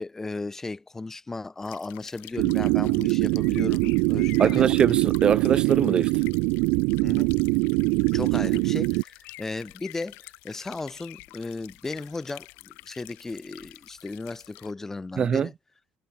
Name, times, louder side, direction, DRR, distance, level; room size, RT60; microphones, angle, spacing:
voice 1, 0.0-4.7 7.0-7.3 8.1-10.2 10.4-15.5, left 3 dB, 15° left, 1.2 m, -35 dB
sound 1, 1.6-14.7, left 26 dB, 80° left, 7.4 m, -47 dB
sound 2, 2.4-9.0, right 31 dB, 85° right, 0.9 m, -23 dB
voice 2, 4.4-6.1 15.2-15.5, right 7 dB, 30° right, 0.3 m, -23 dB
cardioid pair, 130°, 3 cm